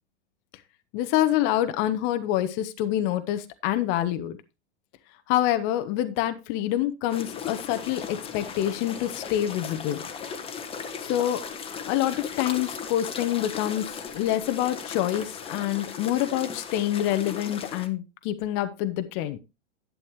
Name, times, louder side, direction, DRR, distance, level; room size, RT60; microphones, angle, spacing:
voice 1, 0.9-4.4 5.3-10.0 11.0-11.4 11.9-19.4, left 12 dB, 35° left, 10 dB, 1.1 m, -26 dB
sound 1, 7.1-17.9, left 6 dB, 15° left, 1.4 m, -37 dB
11.5 x 8.8 x 3.0 m, 0.27 s
figure-of-eight pair, 100°, 34 cm